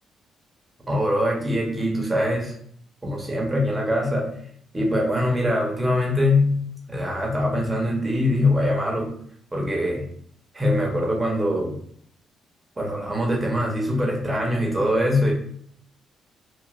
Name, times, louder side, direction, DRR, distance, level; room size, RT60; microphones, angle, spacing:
voice 1, 0.9-2.5 3.0-4.3 4.7-9.2 9.5-10.1 10.5-11.8 12.8-15.3, left 1 dB, 20° right, -1 dB, 1.0 m, -23 dB
3.0 x 2.4 x 2.5 m, 0.63 s
cardioid pair, 90°, 0 cm